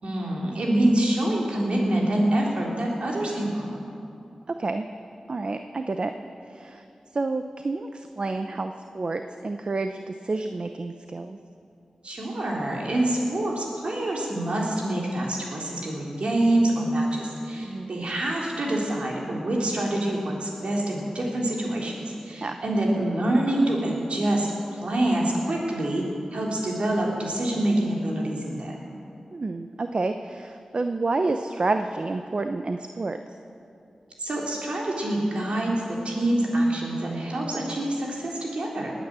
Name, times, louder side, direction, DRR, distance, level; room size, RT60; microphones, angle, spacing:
voice 1, 0.0-3.8 12.0-28.8 34.2-38.9, right 1 dB, 70° right, -2 dB, 3.6 m, -26 dB
voice 2, 5.3-6.1 6.5-6.8 7.1-11.4 17.6-17.9 22.4-22.6 29.3-33.2, right 3 dB, 55° right, 7 dB, 0.7 m, -29 dB
20.0 x 9.3 x 7.6 m, 2.6 s
cardioid pair, 40°, 2 cm